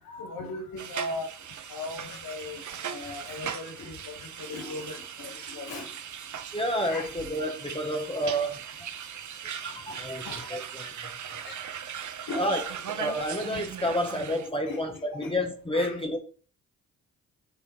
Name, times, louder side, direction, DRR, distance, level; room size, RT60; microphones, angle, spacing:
voice 1, 0.0-1.3 1.7-5.9 6.9-7.1 8.2-8.4 9.7-10.5 11.4-11.6 12.3-12.5 14.0-14.1 14.6-15.4 15.7-16.0, left 2 dB, 65° left, 1.3 m, -39 dB
sound 1, 0.8-14.5, right 8 dB, 50° right, 0.8 m, -39 dB
voice 2, 6.5-8.6 9.6-10.2 10.5-10.9 12.4-12.6 12.9-16.2, equal, 15° left, 1.4 m, -29 dB
7.3 x 3.5 x 4.6 m
hypercardioid pair, 40°, 39 cm